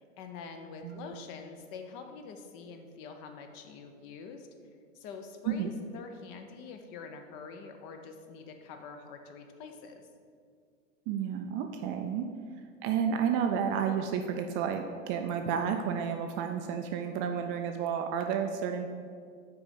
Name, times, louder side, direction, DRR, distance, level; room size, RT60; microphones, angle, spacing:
voice 1, 0.0-4.5 4.9-10.0, left 5 dB, 45° left, 5 dB, 0.8 m, -45 dB
voice 2, 11.1-12.3 12.8-18.9, right 7 dB, 30° right, 5 dB, 0.4 m, -31 dB
5.9 x 4.4 x 5.1 m, 2.1 s
hypercardioid pair, 95°, 38 cm